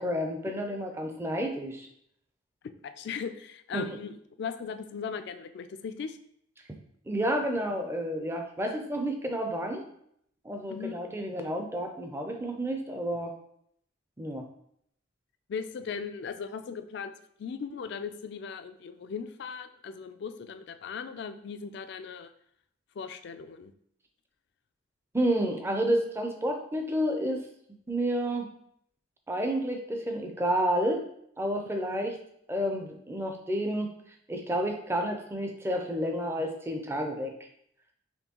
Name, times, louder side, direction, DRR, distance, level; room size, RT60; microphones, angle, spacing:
voice 1, 0.0-1.9 3.7-4.0 7.1-9.8 10.4-13.3 14.2-14.4 25.1-27.4 27.9-28.5 29.3-31.0 31.4-32.2 32.5-33.9 34.3-37.3, equal, 10° right, 4 dB, 0.4 m, -30 dB
voice 2, 2.8-6.2 10.7-11.0 15.5-17.1 17.4-22.3 23.0-23.7 31.8-31.9, left 6 dB, 55° left, 9 dB, 0.3 m, -38 dB
4.3 x 3.0 x 2.9 m, 0.70 s
head